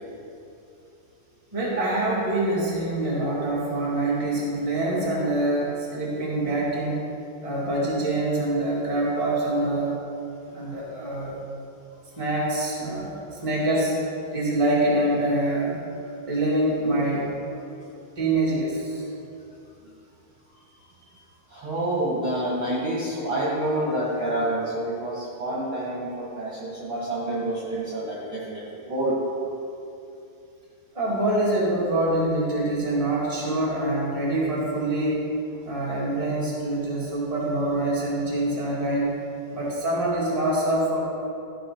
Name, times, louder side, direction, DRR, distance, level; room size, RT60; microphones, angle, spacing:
voice 1, 1.5-7.0 7.4-10.0 10.5-11.3 12.1-13.1 13.4-13.9 14.3-15.8 16.3-17.3 18.1-19.0 30.9-35.3 35.6-39.1 39.5-41.0, right 1 dB, 20° right, -6 dB, 1.0 m, -25 dB
voice 2, 21.5-29.2, right 1 dB, 45° right, -7 dB, 1.8 m, -28 dB
14.0 x 5.2 x 5.5 m, 2.7 s
omnidirectional pair, 4.3 m